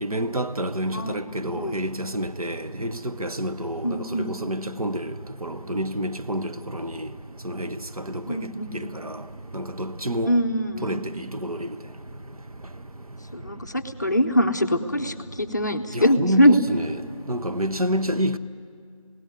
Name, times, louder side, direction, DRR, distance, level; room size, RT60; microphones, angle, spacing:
voice 1, 0.0-5.1 5.4-7.1 7.4-8.2 8.7-9.2 9.5-10.3 10.8-11.7 15.9-17.0 17.3-18.4, equal, 85° right, 1.1 m, -28 dB
voice 2, 3.8-4.4 8.3-8.7 10.3-11.0 13.3-16.5, equal, 30° left, 0.8 m, -22 dB
20.5 x 17.0 x 9.5 m
figure-of-eight pair, 170°, 18 cm